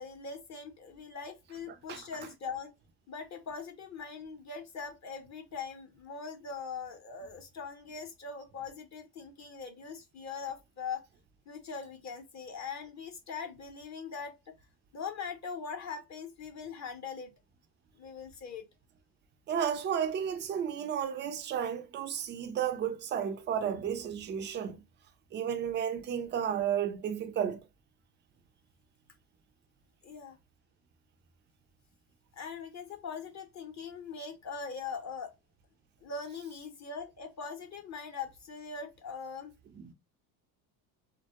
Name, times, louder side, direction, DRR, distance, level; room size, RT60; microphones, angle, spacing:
voice 1, 0.0-2.7 3.1-11.1 11.5-14.4 14.9-17.3 18.0-18.7 30.0-30.4 32.3-35.3 36.0-39.5, left 5 dB, 35° left, 0.7 m, -41 dB
voice 2, 19.5-24.8 25.3-27.6 39.8-39.9, right 8 dB, 25° right, 0.3 m, -32 dB
2.2 x 2.0 x 2.8 m
hypercardioid pair, 80°, 49 cm